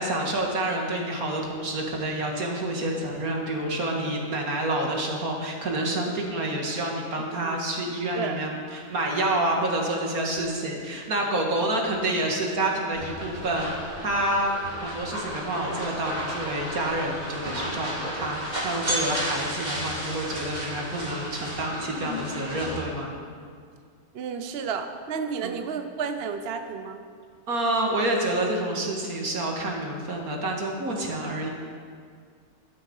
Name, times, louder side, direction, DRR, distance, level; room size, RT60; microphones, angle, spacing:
voice 1, 0.0-13.7 14.0-14.5 14.8-23.2 25.4-25.5 27.5-31.5, right 1 dB, 75° right, 0 dB, 2.4 m, -28 dB
sound 1, 12.9-22.8, equal, 30° right, 3.5 m, -33 dB
voice 2, 24.1-27.0, right 6 dB, 55° right, 7 dB, 0.8 m, -31 dB
12.5 x 11.5 x 5.5 m, 2.1 s
omnidirectional pair, 1.6 m